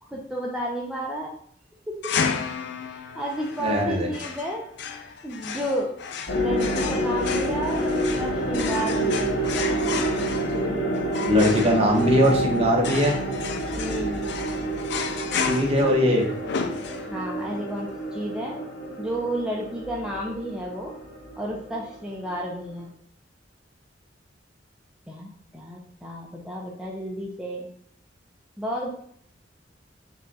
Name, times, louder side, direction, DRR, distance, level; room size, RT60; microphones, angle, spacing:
voice 1, 0.0-1.3 1.9-2.1 2.9-5.9 6.3-9.4 13.8-14.3 17.1-18.6 19.0-20.9 21.4-22.9 25.1-27.7 28.6-28.9, right 1 dB, 5° right, -3 dB, 0.6 m, -32 dB
sound 1, 2.0-17.4, left 6 dB, 65° left, 0.5 m, -33 dB
voice 2, 3.6-4.1 11.2-13.2 15.4-16.2, equal, 35° right, -1 dB, 1.1 m, -20 dB
sound 2, 6.3-22.8, right 1 dB, 85° left, 1.7 m, -28 dB
5.3 x 2.3 x 4.1 m, 0.64 s
head